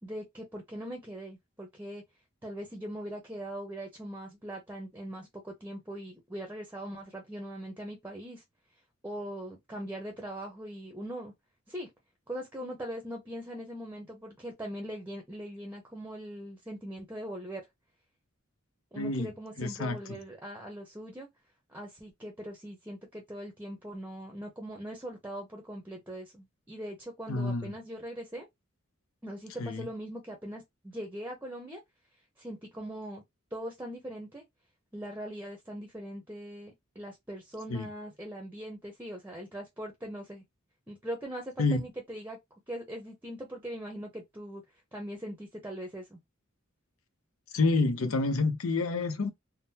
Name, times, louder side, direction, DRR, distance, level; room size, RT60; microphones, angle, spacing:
voice 1, 0.0-2.0 2.4-8.4 9.0-11.3 11.7-11.9 12.3-17.6 18.9-21.3 21.7-28.5 29.2-31.8 32.4-33.2 33.5-34.4 34.9-40.4 40.9-42.4 42.7-44.6 44.9-46.2, equal, 10° right, 0.7 m, -41 dB
voice 2, 19.0-19.3 19.6-20.2 27.3-27.7 29.6-29.9 37.7-37.9 41.6-41.8 47.5-49.3, left 3 dB, 85° left, 0.6 m, -28 dB
3.6 x 2.1 x 2.7 m
head